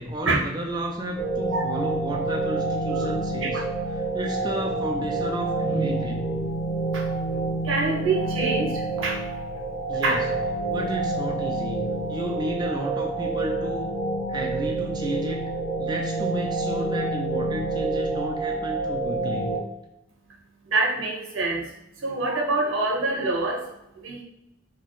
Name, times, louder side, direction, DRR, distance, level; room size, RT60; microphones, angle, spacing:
voice 1, 0.0-3.6 3.9-6.3 9.9-10.2 10.7-13.9 14.3-15.5 15.8-19.6, right 1 dB, 20° right, 1 dB, 0.3 m, -32 dB
sound 1, 1.2-19.6, right 2 dB, 20° left, 0.8 m, -28 dB
voice 2, 1.5-1.8 3.4-3.6 6.9-9.3 10.0-10.2 20.6-23.7 23.9-24.2, right 3 dB, 85° right, -1 dB, 0.8 m, -26 dB
4.1 x 2.2 x 3.0 m, 0.89 s
head